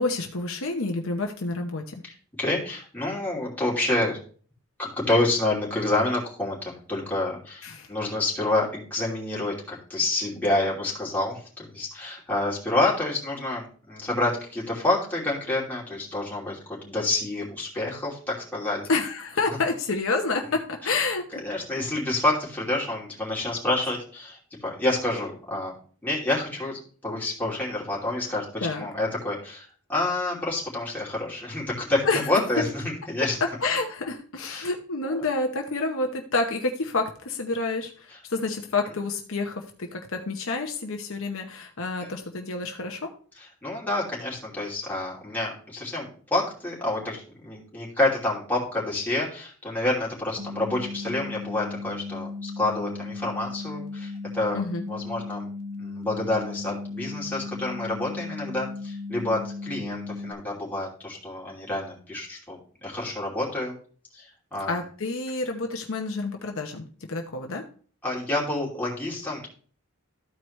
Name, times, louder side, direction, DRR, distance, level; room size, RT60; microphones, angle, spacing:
voice 1, 0.0-1.9 7.6-7.9 18.9-21.2 28.6-28.9 32.0-32.3 33.6-43.1 54.5-54.8 64.7-67.6, left 3 dB, 60° left, 3 dB, 0.9 m, -28 dB
voice 2, 2.0-4.2 4.8-18.8 19.5-19.6 20.8-20.9 21.4-25.7 26.0-33.4 34.5-34.7 35.1-35.2 38.1-38.2 42.0-42.1 43.4-54.6 54.9-55.5 55.8-63.7 64.1-64.7 68.0-69.5, left 2 dB, 10° left, -5 dB, 2.8 m, -28 dB
sound 1, 50.4-60.3, left 3 dB, 75° right, 1.3 m, -36 dB
13.5 x 4.7 x 3.1 m, 0.43 s
head